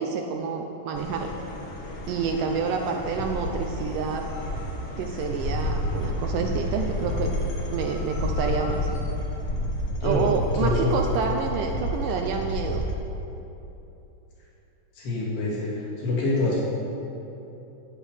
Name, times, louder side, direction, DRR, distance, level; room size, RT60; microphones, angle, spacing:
voice 1, 0.0-1.3 2.1-4.2 5.0-7.3 7.7-8.8 10.0-12.8, right 5 dB, 85° right, 2 dB, 1.8 m, -28 dB
sound 1, 0.9-12.9, left 1 dB, 60° left, 1.5 m, -30 dB
voice 2, 10.0-10.9 15.0-16.6, left 2 dB, 80° left, -6 dB, 4.8 m, -26 dB
18.5 x 8.3 x 5.1 m, 3.0 s
omnidirectional pair, 4.7 m